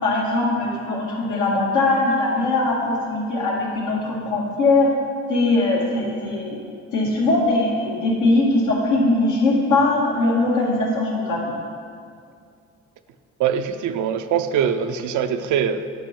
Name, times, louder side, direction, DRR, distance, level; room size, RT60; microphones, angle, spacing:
voice 1, 0.0-4.9 5.3-6.6 6.9-11.4, left 2 dB, 85° left, -4 dB, 1.9 m, -20 dB
voice 2, 13.4-15.9, right 8 dB, 80° right, 9 dB, 0.5 m, -22 dB
9.3 x 5.4 x 4.4 m, 2.3 s
cardioid pair, 90°, 30 cm